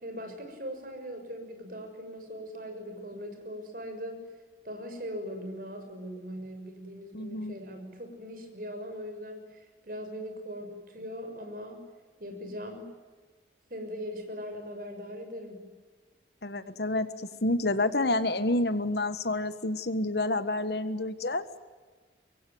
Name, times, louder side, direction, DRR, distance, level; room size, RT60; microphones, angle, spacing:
voice 1, 0.0-4.2 4.6-11.8 12.2-12.9 13.7-15.6, equal, 50° right, 5 dB, 6.5 m, -40 dB
voice 2, 7.1-7.5 16.4-21.5, left 2 dB, 60° left, 13 dB, 1.5 m, -29 dB
25.5 x 22.5 x 9.3 m, 1.4 s
head